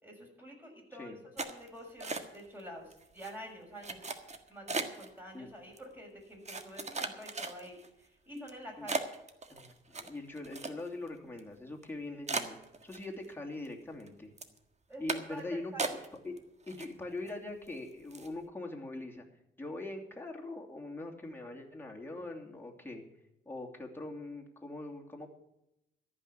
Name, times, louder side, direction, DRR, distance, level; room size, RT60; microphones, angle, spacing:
voice 1, 0.0-4.0 4.5-8.9 14.9-15.0 15.3-16.0, equal, 10° right, -1 dB, 6.3 m, -48 dB
sound 1, 1.4-2.6 2.9-3.3 3.8-5.1 5.8-5.9 6.5-7.9 8.4-8.5 8.9-11.1 11.4-11.5 11.8-11.9 12.3-13.3 13.7-14.1 14.4-14.6 15.1-15.4 15.8-16.4 16.7-17.3 17.7-17.8 18.1-18.4, right 3 dB, 35° right, 1.6 m, -37 dB
voice 2, 9.5-12.6 12.8-14.3 15.0-16.4 16.7-19.2 19.6-23.0 23.4-25.3, left 2 dB, 10° left, 0 dB, 2.9 m, -42 dB
13.5 x 6.1 x 9.8 m, 0.86 s
cardioid pair, 70°, 20 cm